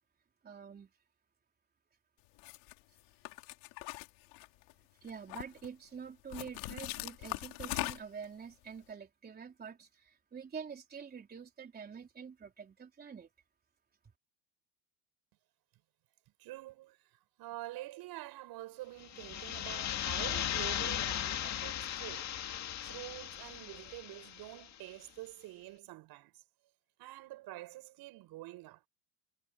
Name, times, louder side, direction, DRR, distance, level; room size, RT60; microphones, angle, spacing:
voice 1, 0.4-0.9 5.0-13.3, right 6 dB, 20° right, 3.9 m, -47 dB
sound 1, 2.4-2.7 3.3-4.7 5.1-5.7 6.3-8.3, left 25 dB, 70° left, 4.4 m, -40 dB
voice 2, 16.4-22.3 22.8-26.4 27.0-28.8, right 17 dB, 55° right, 6.7 m, -47 dB
sound 2, 19.0-24.7, left 11 dB, 40° left, 2.2 m, -37 dB
supercardioid pair, 125°, 43 cm